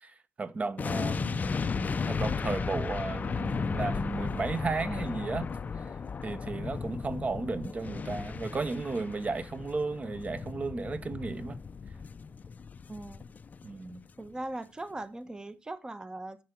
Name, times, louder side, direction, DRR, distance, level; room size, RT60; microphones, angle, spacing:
voice 1, 0.0-5.5 5.8-5.9 6.2-11.6 13.6-14.0, right 3 dB, 35° right, 1.0 m, -34 dB
sound 1, 0.8-13.9 14.2-14.4, left 5 dB, 40° left, 0.5 m, -35 dB
voice 2, 12.9-13.2 14.2-16.4, right 2 dB, 20° right, 0.9 m, -39 dB
10.0 x 6.9 x 4.5 m
cardioid pair, 110°, 4 cm